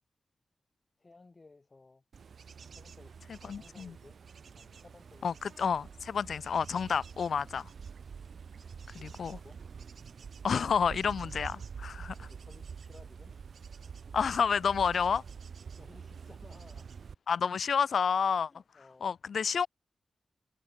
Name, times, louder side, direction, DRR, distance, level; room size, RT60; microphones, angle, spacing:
voice 1, 1.0-2.0 2.7-4.2 4.5-5.5 6.4-6.5 8.9-9.6 12.1-13.4 13.7-13.8 15.8-16.9 18.5-19.1, left 3 dB, 25° left, 2.5 m, -58 dB
Bird / Insect / Wind, 2.1-17.1, right 6 dB, 65° right, 4.4 m, -47 dB
voice 2, 3.4-3.9 5.2-7.7 8.9-9.4 10.4-12.3 14.1-15.2 17.3-18.5 19.0-19.7, left 6 dB, 70° left, 0.5 m, -30 dB
wide cardioid pair, 170°, 0 cm